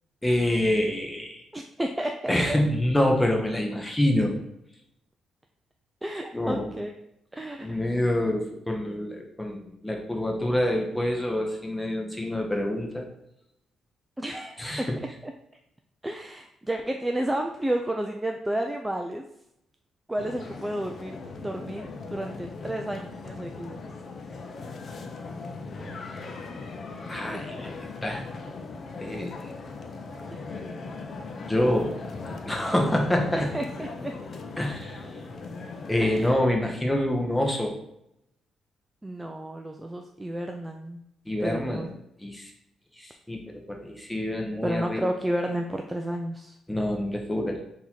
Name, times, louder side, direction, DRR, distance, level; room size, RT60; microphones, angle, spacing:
voice 1, 0.2-1.4 2.3-4.4 6.3-6.7 7.6-13.1 14.6-15.0 27.1-27.7 28.0-28.2 29.0-29.3 31.5-31.9 32.4-33.5 34.6-35.0 35.9-37.7 41.3-41.9 42.2-42.5 43.0-45.1 46.7-47.6, left 1 dB, 10° left, 1 dB, 0.9 m, -26 dB
voice 2, 1.5-2.6 6.0-6.9 7.3-7.8 14.2-14.9 15.2-15.3 16.0-19.2 20.1-21.2 21.4-23.8 27.3-27.4 30.3-30.5 33.4-34.1 36.0-36.4 39.0-41.0 41.4-41.9 44.6-46.6, right 1 dB, 10° right, 3 dB, 0.4 m, -31 dB
sound 1, 20.2-36.3, left 3 dB, 50° left, 0.5 m, -39 dB
3.8 x 2.8 x 4.5 m, 0.80 s
cardioid pair, 90°, 0 cm